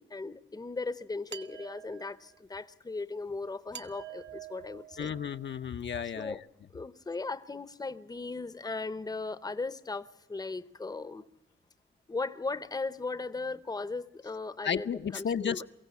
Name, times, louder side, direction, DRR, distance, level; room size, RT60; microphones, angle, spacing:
voice 1, 0.0-5.1 6.1-6.4 6.7-11.2 12.1-15.6, left 3 dB, 20° left, 14 dB, 0.7 m, -37 dB
sound 1, 1.3-2.4 3.7-5.6, right 10 dB, 60° right, 1.0 m, -47 dB
voice 2, 5.0-6.4 14.6-15.6, left 7 dB, 60° left, 8 dB, 0.7 m, -33 dB
23.0 x 16.0 x 8.3 m, 1.0 s
wide cardioid pair, 135°, 21 cm